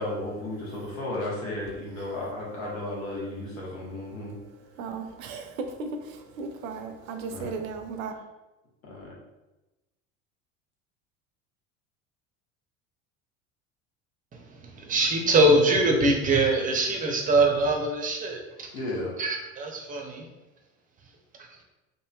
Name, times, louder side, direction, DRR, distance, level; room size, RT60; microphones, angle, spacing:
voice 1, 0.0-4.3 7.3-7.5 8.8-9.1 18.7-19.1, left 1 dB, 85° left, -4 dB, 1.0 m, -34 dB
voice 2, 4.1-8.1, right 4 dB, 75° right, 6 dB, 0.5 m, -37 dB
voice 3, 14.8-18.7 19.2-20.3, right 2 dB, 20° right, 2 dB, 0.5 m, -23 dB
3.0 x 2.6 x 2.2 m, 1.1 s
hypercardioid pair, 80°, 41 cm